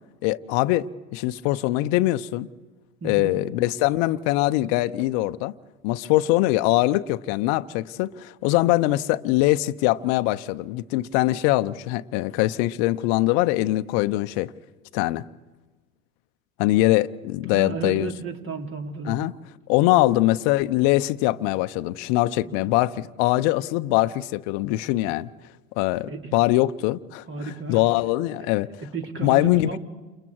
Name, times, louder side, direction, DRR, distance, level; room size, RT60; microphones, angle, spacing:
voice 1, 0.2-2.5 3.0-5.5 5.8-14.5 14.9-15.2 16.6-18.1 19.0-19.3 19.7-25.3 25.8-28.7 29.2-29.8, left 17 dB, 50° left, 0.9 m, -22 dB
voice 2, 3.0-3.4 17.5-19.2 22.4-22.7 26.1-26.2 27.3-27.8 28.9-29.8, right 4 dB, 30° right, 3.0 m, -33 dB
29.5 x 28.0 x 4.7 m
figure-of-eight pair, 85°, 41 cm